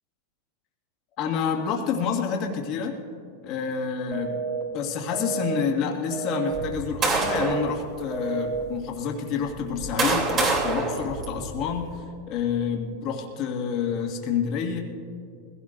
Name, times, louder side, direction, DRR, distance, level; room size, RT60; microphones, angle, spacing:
voice 1, 1.2-3.0 3.4-4.4 4.7-14.8, left 6 dB, 45° left, 1 dB, 1.9 m, -28 dB
sound 1, 4.1-4.6 5.1-5.6 6.1-6.6 7.1-7.6 8.1-8.6, right 5 dB, 55° right, 3.6 m, -30 dB
sound 2, 6.5-7.7 8.4-8.6 9.5-11.8, right 3 dB, 35° right, 3.0 m, -26 dB
21.0 x 16.5 x 2.6 m, 2.5 s
supercardioid pair, 130°, 0 cm